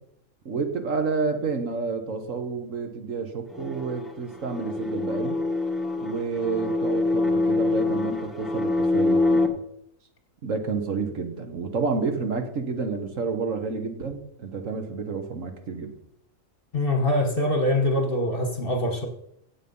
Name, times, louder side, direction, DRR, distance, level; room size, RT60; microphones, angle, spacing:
voice 1, 0.5-5.4 6.0-9.6 10.4-15.9, right 4 dB, 80° right, 6 dB, 1.8 m, -30 dB
sound 1, 3.5-9.5, left 2 dB, ahead, 1.2 m, -25 dB
voice 2, 16.7-19.1, left 1 dB, 45° left, 4 dB, 1.6 m, -24 dB
16.5 x 6.5 x 5.6 m, 0.73 s
omnidirectional pair, 1.3 m